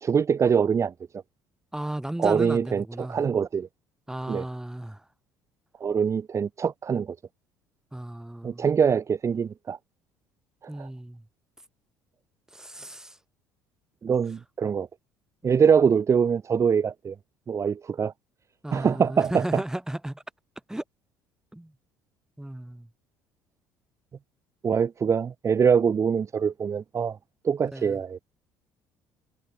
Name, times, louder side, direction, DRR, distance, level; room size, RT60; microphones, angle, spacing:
voice 1, 0.0-0.9 2.2-3.7 4.3-4.4 5.8-7.2 8.4-9.8 10.8-10.9 14.0-14.9 15.4-17.1 17.5-18.1 18.7-19.6 24.6-27.2 27.4-28.2, right 6 dB, 30° right, 0.9 m, -23 dB
voice 2, 1.7-3.2 4.1-5.0 7.9-8.7 10.7-11.2 12.5-13.2 15.4-15.6 18.6-20.2 20.7-20.8 21.5-21.7 22.4-22.9 27.7-28.0, right 1 dB, 5° right, 5.1 m, -34 dB
figure-of-eight pair, 55°, 9 cm